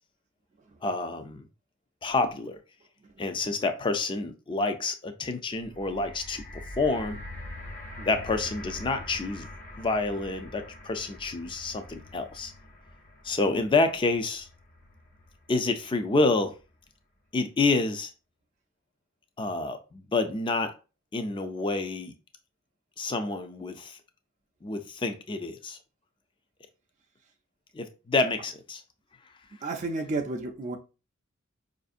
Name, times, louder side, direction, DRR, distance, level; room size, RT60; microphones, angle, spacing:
voice 1, 0.8-1.5 2.0-2.6 3.2-6.4 6.8-7.2 8.1-9.5 9.8-12.5 13.2-14.5 15.5-16.6 17.3-18.1 19.4-20.7 21.1-22.1 23.0-24.0 24.6-25.8 27.7-28.8, left 3 dB, 25° left, 0.4 m, -28 dB
sound 1, 5.6-15.8 16.6-16.7, left 1 dB, 40° left, 0.9 m, -44 dB
voice 2, 29.6-30.8, right 3 dB, 35° right, 0.4 m, -31 dB
5.0 x 2.6 x 2.4 m
head